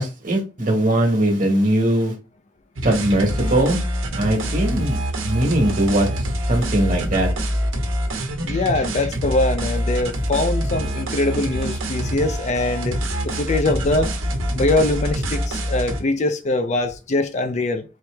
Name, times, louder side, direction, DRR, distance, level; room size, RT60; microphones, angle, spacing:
voice 1, 0.0-2.1 2.8-3.8 4.1-5.0 5.2-6.1 6.5-7.3, right 1 dB, 40° right, 1.4 m, -20 dB
sound 1, 2.8-16.0, equal, 90° right, 1.2 m, -25 dB
voice 2, 8.4-14.1 14.5-17.8, left 2 dB, 35° left, 0.4 m, -22 dB
4.6 x 2.9 x 3.3 m
head